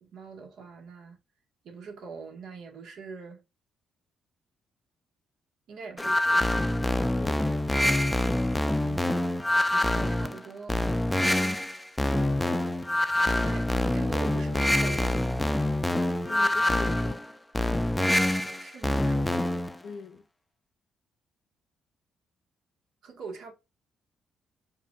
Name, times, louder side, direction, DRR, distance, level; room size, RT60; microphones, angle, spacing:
voice 1, 0.0-1.2 1.6-3.4 5.7-6.5 9.6-10.8 13.3-15.2 18.4-19.3 23.0-23.5, right 5 dB, 75° right, 1.4 m, -43 dB
sound 1, 6.0-19.8, left 1 dB, 10° left, 0.4 m, -26 dB
voice 2, 7.1-7.5 11.2-11.7 16.3-17.2 19.8-20.2, left 6 dB, 60° left, 0.5 m, -42 dB
4.8 x 2.6 x 2.3 m
cardioid pair, 90°, 0 cm